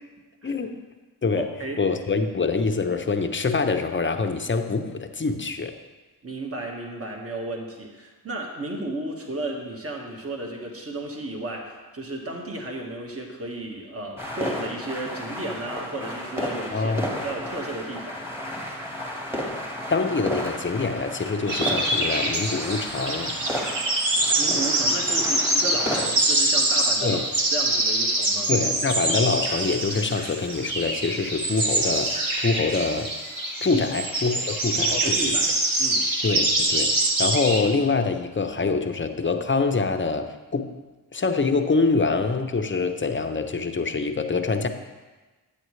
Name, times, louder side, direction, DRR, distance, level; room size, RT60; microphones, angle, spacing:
voice 1, 0.4-0.8 1.2-1.5 1.8-5.8 16.7-17.1 19.9-23.3 27.0-27.2 28.5-33.1 33.6-35.4 36.2-40.8 41.1-44.7, left 4 dB, 30° left, 6 dB, 0.7 m, -25 dB
voice 2, 1.3-1.8 6.2-16.9 17.2-18.2 24.4-27.2 27.5-28.5 33.7-33.8 34.9-35.5 35.8-36.0, right 2 dB, 35° right, 0 dB, 1.6 m, -33 dB
sound 1, 14.2-26.1, equal, 5° right, 1.4 m, -33 dB
sound 2, 21.5-37.6, right 2 dB, 55° right, 1.6 m, -24 dB
9.2 x 8.3 x 3.2 m, 1.2 s
cardioid pair, 60°, 41 cm